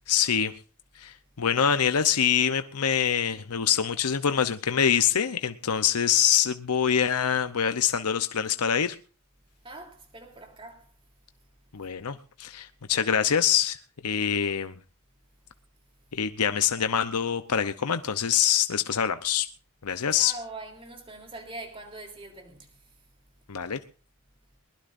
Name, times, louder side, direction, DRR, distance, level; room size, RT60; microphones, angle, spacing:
voice 1, 0.1-0.5 1.0-9.0 11.7-13.8 14.0-14.7 16.1-19.5 19.8-20.3 23.5-23.8, left 8 dB, 90° left, 0.8 m, -25 dB
voice 2, 9.6-10.8 20.1-22.7, right 2 dB, 25° right, 3.4 m, -42 dB
21.5 x 20.0 x 2.6 m
head